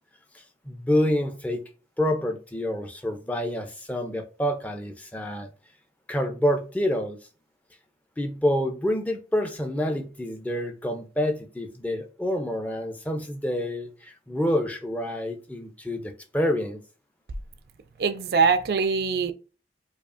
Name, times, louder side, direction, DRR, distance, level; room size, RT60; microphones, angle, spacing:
voice 1, 0.3-1.6 2.0-5.5 6.1-7.2 8.2-16.8, left 1 dB, 10° left, 0.4 m, -27 dB
voice 2, 18.0-19.3, right 5 dB, 60° right, 0.3 m, -22 dB
4.9 x 2.4 x 2.4 m
head